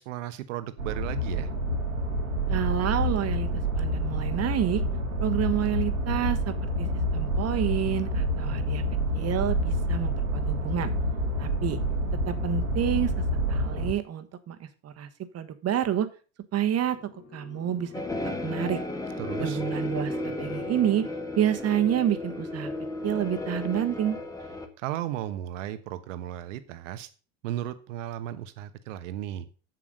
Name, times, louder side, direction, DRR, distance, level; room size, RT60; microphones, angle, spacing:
voice 1, 0.0-1.5 19.2-19.6 24.8-27.1 27.4-29.5, right 12 dB, 70° right, 12 dB, 1.3 m, -35 dB
sound 1, 0.8-13.9, equal, 90° right, 2.0 m, -28 dB
voice 2, 2.5-3.5 3.7-4.8 5.2-6.9 7.1-8.8 9.1-10.9 11.4-11.8 12.2-13.1 13.5-15.1 15.3-16.1 16.5-17.0 17.3-17.9 18.2-18.8 19.4-21.0 21.4-22.7 23.0-24.2, right 10 dB, 40° right, 9 dB, 1.4 m, -28 dB
sound 2, 16.7-21.7, left 6 dB, 45° left, 2.5 m, -47 dB
sound 3, 17.9-24.7, left 2 dB, 10° left, 1.7 m, -34 dB
7.8 x 7.4 x 5.3 m, 0.36 s
hypercardioid pair, 75°, 39 cm